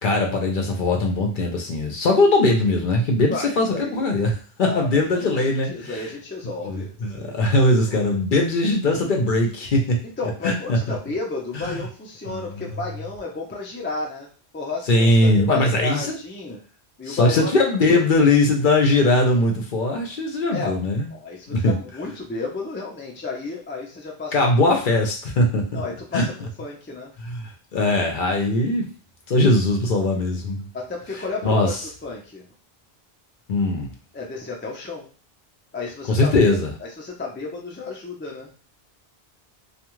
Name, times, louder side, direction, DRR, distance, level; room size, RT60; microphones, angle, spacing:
voice 1, 0.0-5.9 6.7-10.0 10.4-10.8 11.5-11.8 12.3-12.4 14.9-16.2 17.1-21.1 21.5-21.7 24.3-25.8 26.1-26.3 27.2-28.8 29.3-30.7 31.4-31.8 33.5-33.9 36.1-36.7, left 2 dB, 60° left, 1 dB, 0.7 m, -20 dB
voice 2, 3.3-4.2 4.6-8.0 10.0-16.6 17.0-17.5 17.9-18.0 20.5-20.8 21.1-24.4 24.7-24.8 25.7-27.1 30.7-32.4 34.1-35.1 35.7-38.5, left 3 dB, 15° left, -1 dB, 0.4 m, -33 dB
2.4 x 2.3 x 3.0 m, 0.38 s
omnidirectional pair, 1.1 m